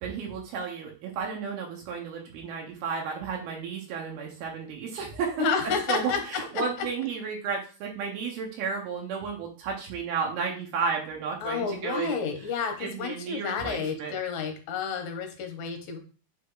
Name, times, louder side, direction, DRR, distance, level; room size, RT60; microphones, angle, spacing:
voice 1, 0.0-5.5 5.9-12.2 12.8-14.1, right 5 dB, 80° right, 0 dB, 3.0 m, -33 dB
voice 2, 5.4-6.2 11.4-16.0, left 5 dB, 65° left, 5 dB, 2.2 m, -30 dB
8.3 x 3.4 x 3.9 m, 0.37 s
omnidirectional pair, 4.4 m